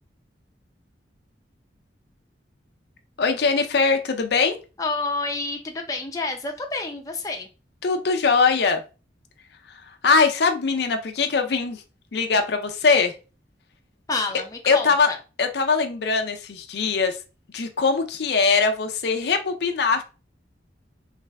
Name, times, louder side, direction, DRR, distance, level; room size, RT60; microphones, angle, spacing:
voice 1, 3.2-4.6 7.8-8.8 10.0-11.8 12.1-13.1 14.7-15.1 15.4-17.2 17.5-20.0, left 4 dB, 65° left, 6 dB, 0.5 m, -21 dB
voice 2, 4.8-7.5 14.1-15.2, left 3 dB, 20° left, 2 dB, 0.6 m, -29 dB
3.4 x 3.3 x 3.3 m, 0.32 s
head